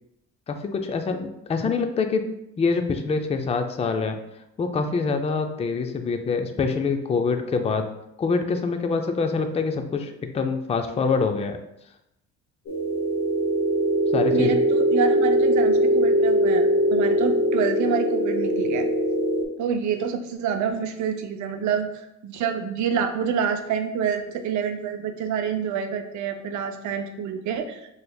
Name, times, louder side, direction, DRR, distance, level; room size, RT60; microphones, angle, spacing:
voice 1, 0.5-2.2 2.6-4.2 4.6-7.9 8.2-11.6 14.1-14.6, left 4 dB, 20° left, 6 dB, 0.4 m, -25 dB
sound 1, 12.7-19.4, equal, 65° left, 0.8 m, -21 dB
voice 2, 14.3-18.9 19.6-21.9 22.2-27.9, right 7 dB, 75° right, 7 dB, 0.5 m, -27 dB
4.2 x 3.3 x 2.2 m, 0.83 s
cardioid pair, 90°, 30 cm